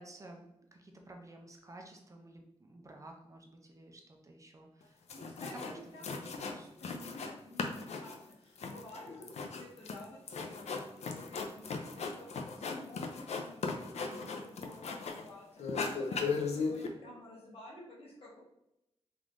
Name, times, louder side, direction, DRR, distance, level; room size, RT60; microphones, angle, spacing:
voice 1, 0.0-5.0 5.7-6.7 14.1-14.4, right 1 dB, 30° right, 2 dB, 0.4 m, -53 dB
sound 1, 4.8-4.9 5.1-5.8 6.0-7.3 7.6-15.3 15.6-16.9, left 4 dB, 85° left, 0.4 m, -37 dB
voice 2, 5.1-18.4, left 1 dB, 65° left, -5 dB, 1.3 m, -52 dB
3.6 x 3.0 x 2.5 m, 0.85 s
wide cardioid pair, 175°, 11 cm